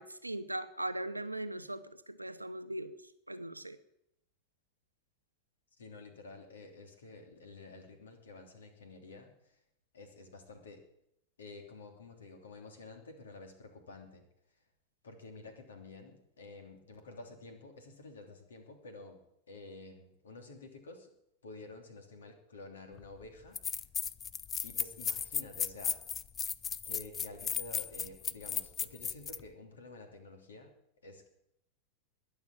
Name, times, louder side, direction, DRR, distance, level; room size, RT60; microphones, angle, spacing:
voice 1, 0.0-2.9 3.3-3.8, right 1 dB, 85° right, 10 dB, 1.0 m, -39 dB
voice 2, 5.8-9.5 9.9-10.8 11.4-14.2 15.0-19.2 19.5-21.1 21.4-23.6 24.6-26.0 26.8-30.7 31.0-31.3, left 2 dB, 65° left, 5 dB, 3.0 m, -50 dB
sound 1, 23.0-23.1 23.5-29.4, left 7 dB, 25° left, 0.5 m, -35 dB
21.0 x 7.0 x 8.6 m, 0.78 s
figure-of-eight pair, 90°, 0 cm